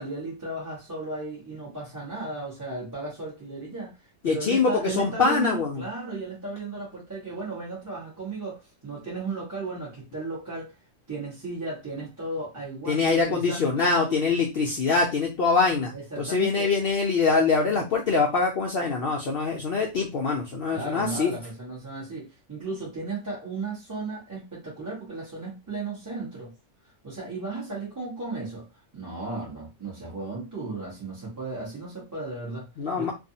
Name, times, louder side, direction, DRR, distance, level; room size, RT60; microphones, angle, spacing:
voice 1, 0.0-10.7 11.1-14.2 15.9-16.7 20.7-26.6 26.8-32.7 33.0-33.1, right 3 dB, 15° right, 0.8 m, -35 dB
voice 2, 4.2-5.8 12.9-21.3 32.8-33.1, left 4 dB, 85° left, 0.5 m, -24 dB
2.6 x 2.3 x 2.7 m
omnidirectional pair, 1.6 m